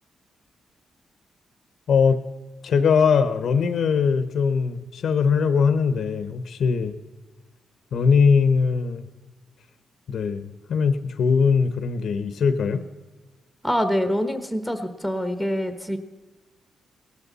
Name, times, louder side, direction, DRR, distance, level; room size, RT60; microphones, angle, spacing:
voice 1, 1.9-2.2 2.6-7.0 7.9-9.1 10.1-12.8, left 5 dB, 65° left, 11 dB, 0.9 m, -21 dB
voice 2, 13.6-16.0, equal, ahead, 8 dB, 1.3 m, -25 dB
18.5 x 13.5 x 4.1 m, 1.3 s
cardioid pair, 125°, 0 cm